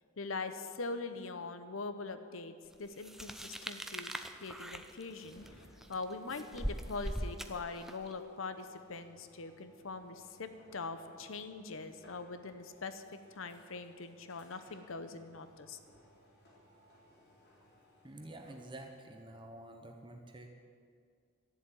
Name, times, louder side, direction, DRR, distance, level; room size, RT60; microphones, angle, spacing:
voice 1, 0.2-4.1 4.4-5.4 5.9-15.8, left 3 dB, 80° left, 10 dB, 0.8 m, -42 dB
sound 1, 3.0-8.1, equal, ahead, 0.5 m, -41 dB
sound 2, 5.0-18.7, equal, 50° left, 3.8 m, -63 dB
voice 2, 18.0-20.5, right 1 dB, 25° right, 3 dB, 1.0 m, -49 dB
13.0 x 7.6 x 9.2 m, 2.2 s
head